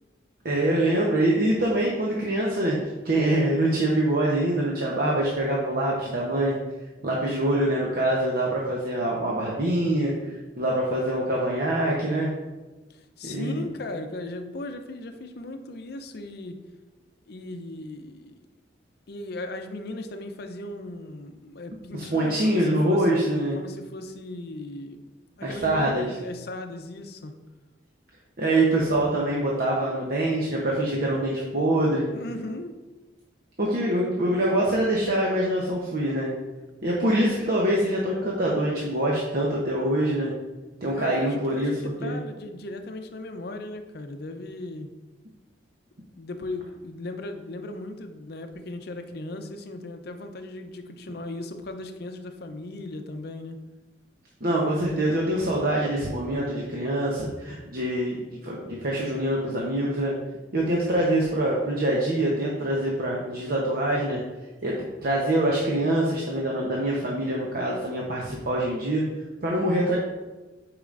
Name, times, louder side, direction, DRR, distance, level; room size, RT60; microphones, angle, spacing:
voice 1, 0.4-2.8 3.0-6.6 7.0-12.3 13.2-13.6 21.9-23.6 25.4-26.1 28.4-32.1 33.6-36.3 36.8-40.3 40.8-41.7 42.0-42.2 54.4-58.2 58.4-60.1 60.5-64.2 64.6-69.0 69.4-70.0, right 1 dB, 55° right, -3 dB, 0.9 m, -24 dB
voice 2, 12.9-16.6 17.3-18.3 19.1-25.0 25.4-27.3 32.1-32.8 40.9-44.9 46.2-53.6, left 2 dB, 60° left, 7 dB, 0.6 m, -37 dB
8.6 x 4.9 x 2.5 m, 1.2 s
head